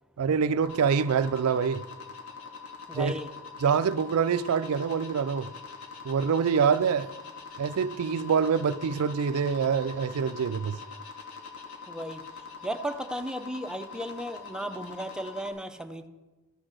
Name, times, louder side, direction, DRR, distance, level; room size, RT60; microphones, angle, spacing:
voice 1, 0.2-1.8 2.9-3.1 3.6-5.5 6.0-7.1 7.6-10.8, right 6 dB, 70° right, 0.4 m, -25 dB
sound 1, 0.6-15.5, left 5 dB, 75° left, 1.8 m, -44 dB
voice 2, 2.9-3.3 11.9-12.2 12.6-16.1, equal, 5° right, 0.6 m, -35 dB
14.0 x 5.9 x 6.5 m
head